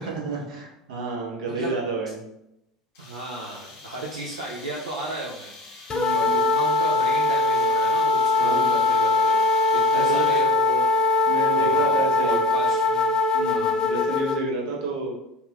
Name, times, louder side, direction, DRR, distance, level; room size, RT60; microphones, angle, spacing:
voice 1, 0.0-2.2 5.9-6.3 8.4-8.7 9.9-10.3 11.3-12.4 13.3-15.1, right 3 dB, 65° right, -2 dB, 0.7 m, -30 dB
sound 1, 2.9-10.7, left 3 dB, 55° left, 0.8 m, -45 dB
voice 2, 3.0-9.4 9.7-11.1 11.5-13.2 13.4-13.8, right 2 dB, 85° right, -4 dB, 0.3 m, -34 dB
sound 2, 5.9-14.4, left 3 dB, 25° left, 0.3 m, -21 dB
2.8 x 2.2 x 2.3 m, 0.86 s
figure-of-eight pair, 75°, 3 cm